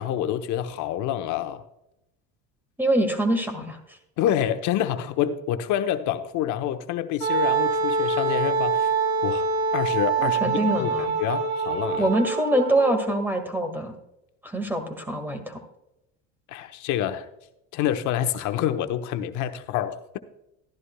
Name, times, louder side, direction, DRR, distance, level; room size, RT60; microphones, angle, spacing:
voice 1, 0.0-1.6 4.2-8.9 9.2-12.1 16.5-17.3 17.7-20.2, left 11 dB, 55° left, 9 dB, 1.0 m, -27 dB
voice 2, 2.8-4.0 10.2-11.1 12.0-14.0 14.4-15.6, right 1 dB, 5° right, 7 dB, 1.8 m, -25 dB
Wind instrument woodwind instrument, 7.2-13.2, right 4 dB, 80° right, 2.4 m, -25 dB
13.0 x 11.0 x 2.3 m, 0.86 s
supercardioid pair, 105°, 35 cm